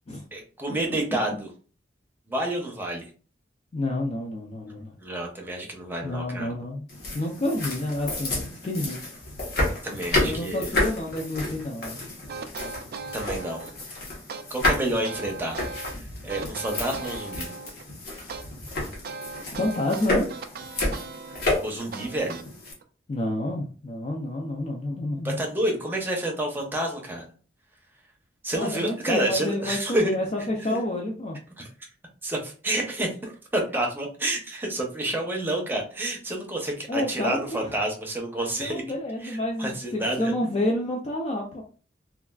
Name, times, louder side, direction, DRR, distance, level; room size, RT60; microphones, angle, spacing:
voice 1, 0.3-1.5 2.3-3.0 5.0-6.5 9.8-10.8 13.1-13.7 14.5-16.0 16.2-17.5 21.6-22.4 25.2-27.3 28.4-30.1 30.7-30.8 31.6-31.7 32.2-38.8 39.2-40.3, right 1 dB, 10° right, 0 dB, 0.7 m, -29 dB
voice 2, 3.7-4.9 6.0-6.8 7.1-9.0 10.2-12.0 19.6-20.3 23.1-25.4 28.5-31.4 36.9-37.7 38.6-41.6, left 1 dB, 35° left, 0 dB, 0.4 m, -29 dB
sound 1, 6.9-22.7, left 1 dB, 60° left, 1.0 m, -31 dB
sound 2, 12.3-13.8 14.3-15.9 16.3-17.8 18.3-22.8, right 4 dB, 55° right, 0.3 m, -38 dB
3.3 x 2.3 x 2.3 m, 0.38 s
head